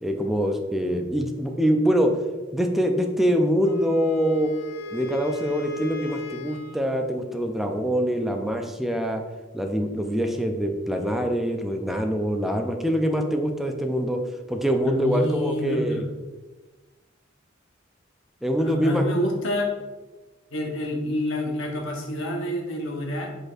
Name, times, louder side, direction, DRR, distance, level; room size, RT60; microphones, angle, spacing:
voice 1, 0.0-2.2 2.5-4.5 4.9-9.2 9.5-14.2 14.5-16.0 18.4-19.0, equal, ahead, 4 dB, 0.4 m, -24 dB
Wind instrument woodwind instrument, 3.6-6.9, left 2 dB, 50° left, 0.6 m, -38 dB
voice 2, 14.8-16.0 18.6-19.7 20.5-23.3, equal, 80° left, 1 dB, 0.9 m, -27 dB
5.1 x 4.1 x 2.5 m, 1.2 s
head